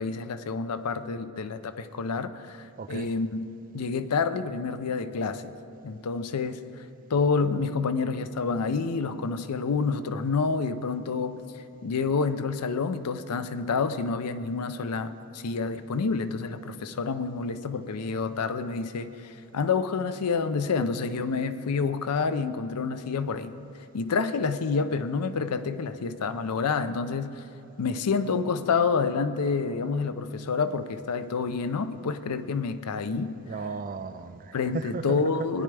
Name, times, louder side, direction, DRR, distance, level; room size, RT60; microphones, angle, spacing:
voice 1, 0.0-3.4 3.7-5.6 5.8-6.6 7.1-11.4 11.8-23.6 23.9-27.4 27.8-33.3 34.5-35.6, left 4 dB, 90° left, 12 dB, 0.5 m, -28 dB
voice 2, 2.8-3.1 33.5-35.5, right 4 dB, 40° right, 11 dB, 0.4 m, -35 dB
17.0 x 10.5 x 3.4 m, 2.9 s
head